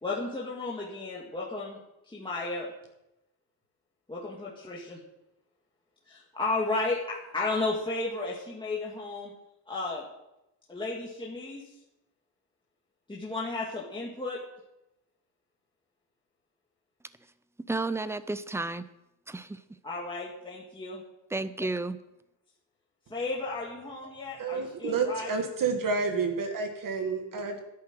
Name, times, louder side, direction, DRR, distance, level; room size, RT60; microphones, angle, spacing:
voice 1, 0.0-1.8 2.1-2.7 4.1-5.0 6.1-9.3 9.7-10.1 10.7-11.7 13.1-14.4 19.8-21.0 23.1-25.3, left 3 dB, 10° left, 2.0 m, -33 dB
voice 2, 17.7-18.8 19.3-19.6 21.3-22.0, right 2 dB, 5° right, 0.4 m, -32 dB
voice 3, 24.4-27.6, right 4 dB, 45° right, 2.0 m, -29 dB
11.0 x 8.5 x 7.6 m
cardioid pair, 135°, 45 cm